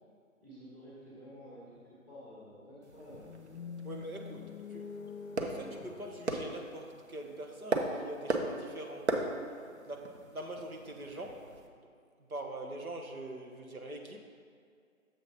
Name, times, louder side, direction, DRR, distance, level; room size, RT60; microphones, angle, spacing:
voice 1, 0.4-3.5, equal, 10° right, -9 dB, 1.1 m, -51 dB
sound 1, 2.8-11.7, right 2 dB, 50° right, 0.8 m, -39 dB
sound 2, 3.2-7.4, left 5 dB, 65° left, 0.5 m, -46 dB
voice 2, 3.8-4.4 4.7-4.8 5.4-9.3 9.9-11.9 12.3-14.2, right 1 dB, 85° right, 2 dB, 1.1 m, -43 dB
7.1 x 3.9 x 5.7 m, 2.2 s
figure-of-eight pair, 150°, 42 cm